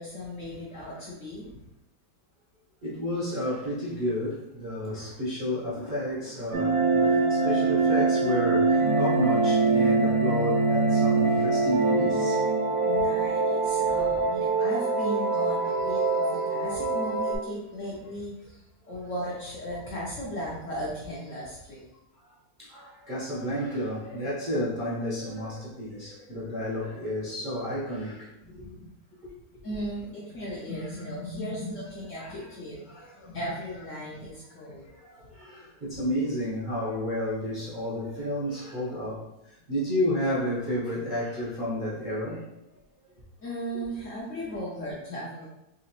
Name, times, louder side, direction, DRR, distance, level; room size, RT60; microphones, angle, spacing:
voice 1, 0.0-1.6 12.8-21.8 28.6-28.9 29.6-32.9 33.2-34.9 43.4-45.5, equal, 55° left, -5 dB, 0.9 m, -36 dB
voice 2, 2.8-12.5 12.9-13.0 22.6-28.6 32.2-32.4 32.9-33.4 34.6-42.5, left 1 dB, 40° right, -9 dB, 0.7 m, -31 dB
sound 1, 6.5-17.4, right 3 dB, 80° right, 1.6 m, -24 dB
3.9 x 3.0 x 2.9 m, 0.89 s
omnidirectional pair, 2.0 m